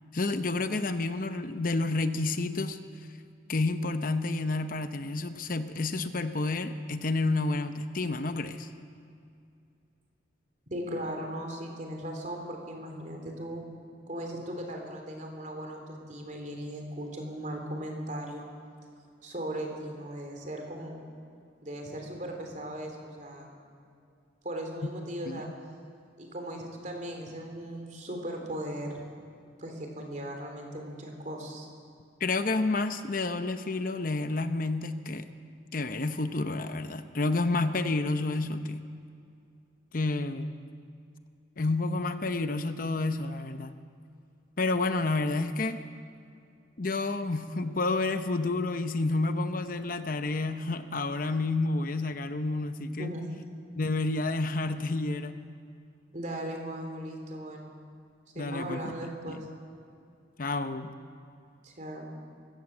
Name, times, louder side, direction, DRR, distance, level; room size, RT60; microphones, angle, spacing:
voice 1, 0.1-2.8 3.5-8.7 25.3-25.5 32.2-35.3 35.7-38.9 39.9-40.5 41.6-43.8 44.6-45.8 46.8-53.2 53.7-55.4 58.4-58.9 59.3-59.4 60.4-60.9, left 3 dB, 45° left, 9 dB, 0.8 m, -30 dB
voice 2, 10.7-13.6 14.1-18.5 19.2-21.0 21.6-23.5 24.4-25.5 26.2-29.0 29.6-31.7 53.0-53.3 56.1-57.7 58.3-59.4 61.6-62.1, right 1 dB, 40° right, 2 dB, 3.5 m, -38 dB
24.0 x 16.5 x 7.3 m, 2.4 s
head